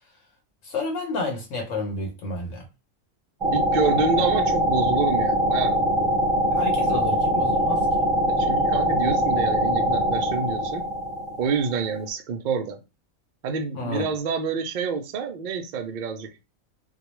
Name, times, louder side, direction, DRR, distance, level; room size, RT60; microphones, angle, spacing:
voice 1, 0.6-2.6 6.5-8.0 13.7-14.1, left 2 dB, 75° left, 1.0 m, -30 dB
sound 1, 3.4-12.0, equal, 25° right, 0.7 m, -23 dB
voice 2, 3.5-6.2 8.3-10.8 11.4-12.8 13.4-16.3, right 5 dB, 70° right, 0.4 m, -28 dB
2.3 x 2.1 x 3.0 m
omnidirectional pair, 1.4 m